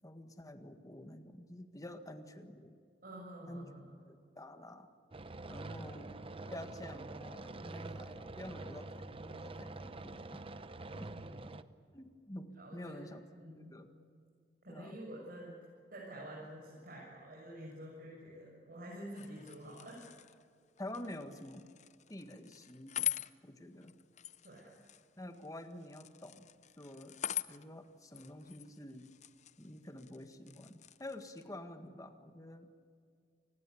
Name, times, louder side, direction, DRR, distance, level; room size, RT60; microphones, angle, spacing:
voice 1, 0.0-2.8 3.5-3.7 4.1-4.9 5.5-6.2 6.5-10.4 10.9-11.1 11.9-13.2 13.5-13.9 14.7-15.0 20.8-21.7 22.1-23.1 23.4-23.9 25.2-26.5 26.8-27.2 27.5-29.1 29.6-32.7, left 1 dB, 20° left, 7 dB, 1.7 m, -48 dB
voice 2, 3.0-4.0 5.7-5.9 11.1-11.5 12.6-13.1 13.4-13.8 14.6-15.6 15.9-20.0 24.4-24.8, right 1 dB, 55° right, -5 dB, 7.3 m, -49 dB
sound 1, 5.1-11.6, right 2 dB, 30° right, 0.8 m, -46 dB
sound 2, 19.1-31.5, left 11 dB, 40° left, 0.6 m, -45 dB
29.5 x 20.0 x 8.5 m, 2.2 s
head